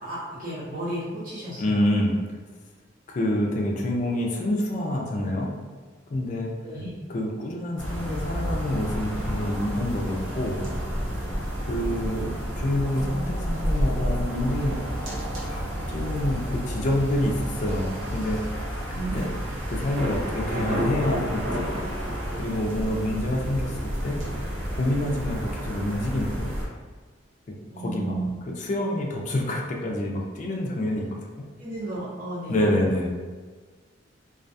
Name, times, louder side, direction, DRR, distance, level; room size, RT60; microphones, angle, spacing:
voice 1, 0.0-1.9 6.6-6.9 12.0-12.2 18.9-19.2 27.7-28.4 31.6-32.8, right 1 dB, 45° right, -9 dB, 0.7 m, -33 dB
voice 2, 1.6-2.1 3.1-5.5 6.1-6.5 7.1-10.6 11.6-14.8 15.5-15.6 15.9-19.3 19.7-21.7 22.4-24.2 24.8-26.5 27.5-27.6 27.8-28.2 28.5-31.5 32.5-33.2, left 1 dB, 40° left, -1 dB, 0.4 m, -27 dB
sound 1, 7.8-26.6, equal, 85° right, 0.7 m, -31 dB
Thunder, 20.0-25.6, equal, 65° right, 1.1 m, -33 dB
2.3 x 2.2 x 2.6 m, 1.4 s
head